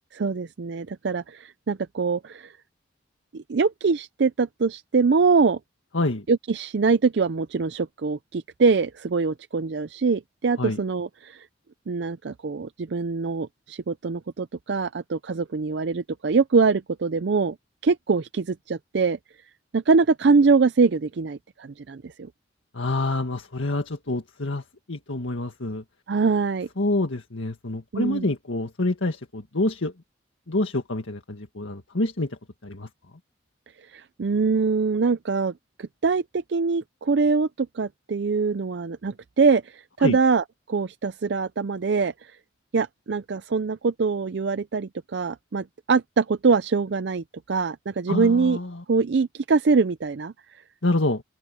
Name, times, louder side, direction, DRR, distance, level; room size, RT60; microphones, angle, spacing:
voice 1, 0.1-2.5 3.3-5.6 6.3-11.5 11.9-17.6 17.8-19.2 19.7-22.3 26.1-26.7 27.9-28.3 33.9-40.4 40.7-42.3 42.7-48.6 48.9-50.6, right 4 dB, 60° right, 0.5 m, -23 dB
voice 2, 5.9-6.3 10.6-10.8 22.7-25.8 26.8-29.9 30.5-32.9 40.0-40.2 48.1-48.8 50.8-51.2, left 2 dB, 85° left, 1.8 m, -27 dB
head